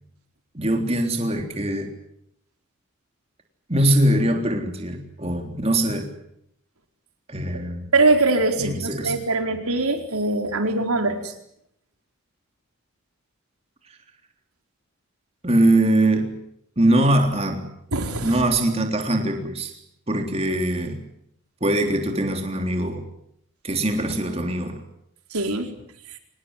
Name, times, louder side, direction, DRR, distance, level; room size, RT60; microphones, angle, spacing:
voice 1, 0.5-1.9 3.7-6.1 7.3-7.9 8.6-9.2 15.4-16.3 16.8-17.7 18.2-19.7 20.1-21.0 21.6-23.1 23.6-24.8, right 1 dB, 30° right, 4 dB, 3.7 m, -22 dB
voice 2, 7.9-11.3 17.9-18.3 25.3-25.7, right 2 dB, 90° right, 5 dB, 4.5 m, -22 dB
25.5 x 19.5 x 9.8 m, 0.75 s
head